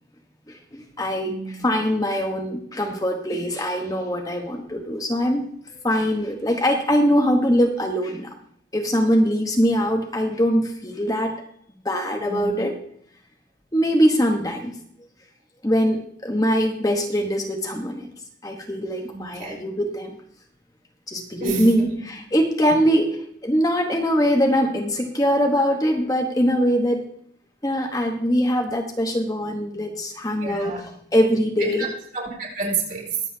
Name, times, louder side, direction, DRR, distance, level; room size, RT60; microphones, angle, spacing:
voice 1, 0.5-5.5 5.8-8.3 8.7-11.3 11.8-12.8 13.7-14.8 15.6-18.1 18.4-20.2 21.1-21.9 22.3-27.0 27.6-31.9, equal, 20° left, 2 dB, 1.1 m, -22 dB
voice 2, 1.2-1.7 12.3-12.7 19.1-19.6 21.4-22.1 30.4-30.8 31.6-31.9 32.1-33.2, right 4 dB, 50° right, -3 dB, 4.7 m, -29 dB
22.5 x 8.2 x 2.8 m, 0.65 s
head